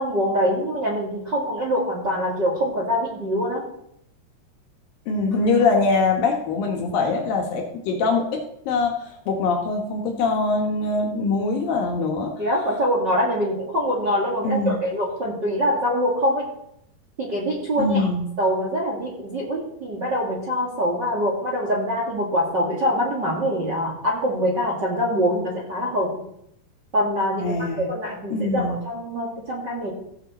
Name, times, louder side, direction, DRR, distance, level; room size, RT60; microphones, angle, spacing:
voice 1, 0.0-3.6 12.4-16.4 17.2-18.1 18.4-26.2 26.9-27.5 27.9-29.9, equal, 40° right, -2 dB, 1.5 m, -24 dB
voice 2, 5.1-12.3 14.4-14.8 17.8-18.3 27.4-27.9 28.3-28.8, left 3 dB, 65° left, 2 dB, 2.5 m, -23 dB
16.5 x 7.5 x 4.2 m, 0.75 s
omnidirectional pair, 4.9 m